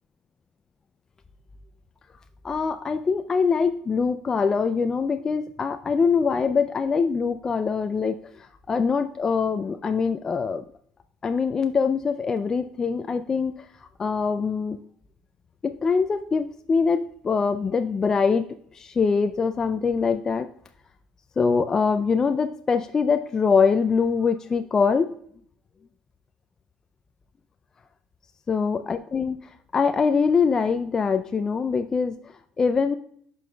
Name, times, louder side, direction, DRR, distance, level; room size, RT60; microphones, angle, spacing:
voice 1, 2.4-10.6 11.2-14.8 15.6-18.4 18.7-20.5 21.4-25.1 28.5-29.4 29.7-33.0, left 5 dB, 25° left, 8 dB, 0.3 m, -23 dB
9.1 x 5.4 x 2.2 m, 0.63 s
cardioid pair, 110°, 2 cm